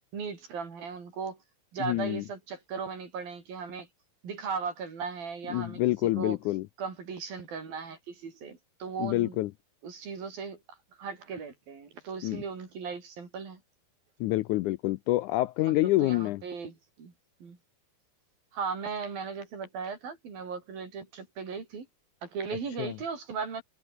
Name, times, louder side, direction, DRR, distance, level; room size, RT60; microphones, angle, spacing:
voice 1, 0.0-1.4 1.7-3.9 4.2-6.4 6.8-9.4 9.8-13.6 15.7-17.1 17.4-17.6 18.5-21.9 22.2-23.6, right 5 dB, 85° right, 6.9 m, -37 dB
voice 2, 1.8-2.2 5.5-6.7 9.0-9.5 12.2-12.4 14.2-16.4 22.8-22.9, left 18 dB, 80° left, 1.8 m, -27 dB
omnidirectional pair, 4.0 m